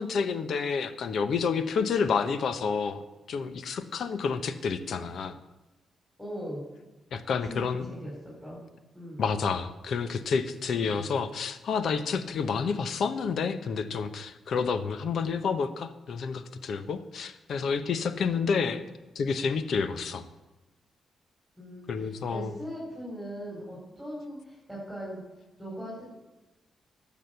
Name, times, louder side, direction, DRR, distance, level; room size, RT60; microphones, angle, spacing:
voice 1, 0.0-3.0 3.3-5.4 7.1-7.9 9.2-20.2 21.9-22.6, left 5 dB, 70° left, 11 dB, 1.0 m, -29 dB
voice 2, 6.2-6.7 7.2-7.6 7.9-8.6 8.9-9.2 10.9-11.1 12.5-12.7 18.3-18.8 21.6-25.2 25.6-26.1, equal, ahead, -6 dB, 5.3 m, -40 dB
12.5 x 7.3 x 6.9 m, 1.1 s
cardioid pair, 85°, 0 cm